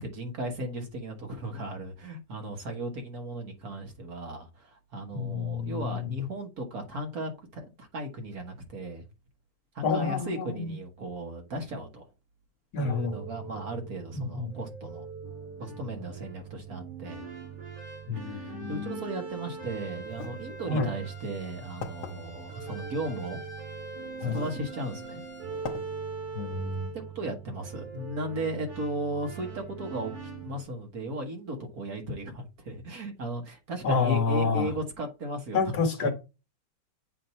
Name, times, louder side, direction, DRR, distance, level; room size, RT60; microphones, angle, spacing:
voice 1, 0.0-9.1 9.7-12.0 12.7-15.1 15.6-17.3 18.3-23.4 24.2-25.2 26.9-30.1 30.4-35.6 36.0-36.1, right 1 dB, 50° right, 1.7 m, -36 dB
voice 2, 5.1-6.2 9.8-10.7 12.7-13.2 14.1-14.6 18.1-19.0 20.7-20.9 24.2-24.4 26.3-26.9 33.8-34.7 35.5-36.1, left 4 dB, 55° left, 1.7 m, -29 dB
sound 1, 12.8-30.6, right 5 dB, 85° right, 3.5 m, -41 dB
sound 2, 20.1-20.3 21.2-21.3 21.8-22.1 23.4-23.5 24.2-24.6 25.0-25.1 25.6-25.8, left 5 dB, 75° left, 1.6 m, -38 dB
7.6 x 2.7 x 5.3 m
omnidirectional pair, 2.1 m